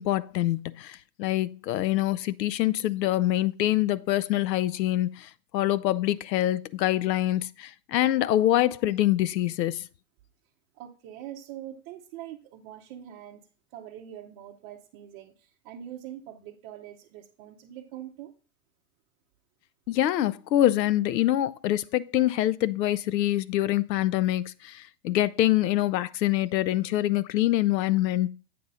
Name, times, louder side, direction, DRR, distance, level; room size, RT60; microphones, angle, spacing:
voice 1, 0.0-9.9 19.9-28.3, left 14 dB, 85° left, 0.6 m, -25 dB
voice 2, 10.7-13.4 13.7-18.3, right 11 dB, 30° right, 0.7 m, -43 dB
8.6 x 3.8 x 5.5 m
hypercardioid pair, 150°, 49 cm